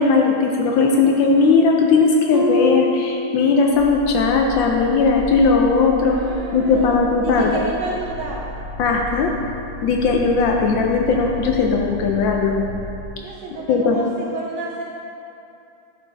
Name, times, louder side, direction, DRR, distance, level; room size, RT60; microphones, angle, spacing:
voice 1, 0.0-6.2 6.5-7.5 8.8-9.3 9.8-12.7 13.7-14.0, left 4 dB, 75° left, 1 dB, 1.1 m, -17 dB
Harp, 2.3-4.1 4.4-4.8 5.4-5.5, left 3 dB, 35° left, 0.7 m, -26 dB
sound 1, 3.7-13.1, left 1 dB, 55° right, 1.2 m, -34 dB
voice 2, 6.0-8.6 13.2-14.8, right 3 dB, 75° right, -2 dB, 1.0 m, -31 dB
11.0 x 4.3 x 3.3 m, 2.7 s
omnidirectional pair, 2.4 m